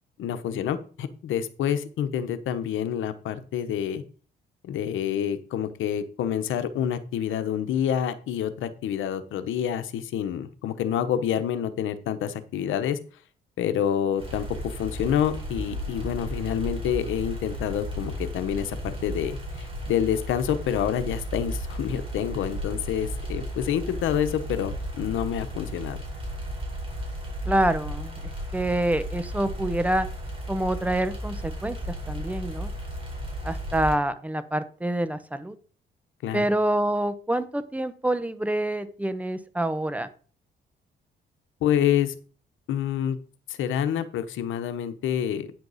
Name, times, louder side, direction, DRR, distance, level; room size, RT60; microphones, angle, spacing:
voice 1, 0.2-4.0 4.6-13.0 13.6-26.0 36.2-36.5 41.6-42.2 42.7-43.2 43.5-45.5, left 9 dB, 80° left, 10 dB, 1.0 m, -27 dB
sound 1, 14.2-33.9, equal, 25° right, 4.0 m, -34 dB
voice 2, 27.4-28.2 28.5-30.1 30.5-32.7 33.4-35.5 36.3-40.1, right 1 dB, 5° right, 12 dB, 1.0 m, -26 dB
9.7 x 6.5 x 4.1 m, 0.40 s
cardioid pair, 90°, 20 cm